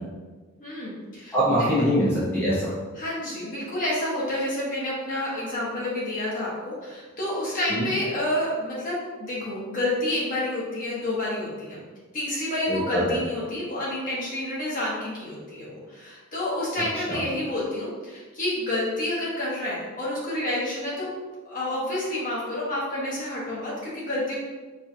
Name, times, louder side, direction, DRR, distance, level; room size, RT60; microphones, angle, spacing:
voice 1, 0.6-1.7 2.9-11.8 12.1-21.1 21.4-24.4, left 1 dB, 40° left, -7 dB, 1.1 m, -29 dB
voice 2, 1.3-2.7 7.7-7.9 12.7-13.2 17.1-17.2, equal, 10° left, -11 dB, 0.7 m, -23 dB
4.5 x 2.4 x 2.7 m, 1.3 s
head